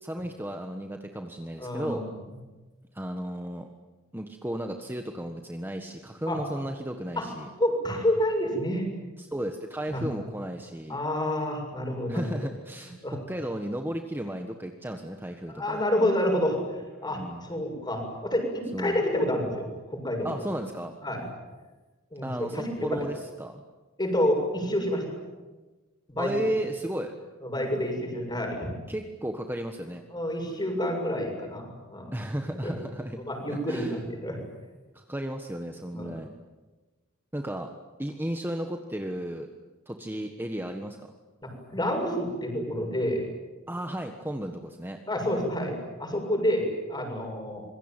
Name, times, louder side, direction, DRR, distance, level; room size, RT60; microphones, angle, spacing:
voice 1, 0.0-2.1 2.9-3.7 4.1-7.5 9.2-11.0 12.1-15.8 17.0-17.5 18.7-19.0 20.2-20.9 22.2-23.6 26.2-27.1 28.9-30.0 32.1-33.2 33.5-34.0 34.9-36.3 37.3-37.7 38.0-39.5 39.9-41.1 43.7-45.0, right 1 dB, 10° right, 4 dB, 1.4 m, -34 dB
voice 2, 1.6-2.1 6.3-6.4 7.2-7.3 7.6-8.9 9.9-10.0 10.9-12.2 13.0-13.2 15.6-16.6 17.0-18.5 18.8-20.3 21.0-21.2 22.1-23.0 24.0-25.0 26.1-26.3 27.4-28.7 30.1-32.1 32.6-32.7 33.3-34.4 35.9-36.1 41.4-43.3 45.1-47.6, left 1 dB, 20° left, 3 dB, 7.1 m, -28 dB
26.5 x 22.5 x 9.1 m, 1.2 s
head